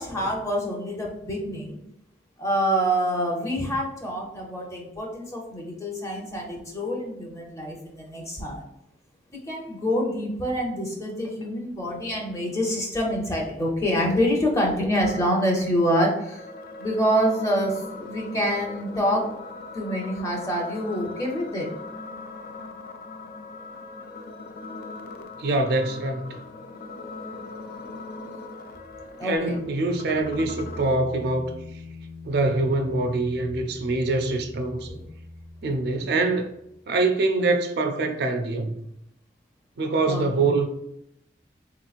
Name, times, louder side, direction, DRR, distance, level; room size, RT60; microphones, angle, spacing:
voice 1, 0.0-1.8 2.4-8.6 9.5-16.5 16.8-19.2 19.7-21.7 29.2-29.6 33.8-33.9 34.9-35.0 40.0-40.5, equal, 15° left, 0.7 m, -26 dB
sound 1, 15.0-31.0, left 3 dB, 55° left, 0.3 m, -40 dB
voice 2, 25.4-26.4 29.2-31.6 32.3-34.9 35.6-36.5 36.9-38.8 39.8-40.7, right 2 dB, 60° right, 0.4 m, -24 dB
sound 2, 29.3-36.8, left 2 dB, 80° left, 1.0 m, -43 dB
3.5 x 2.9 x 2.4 m
head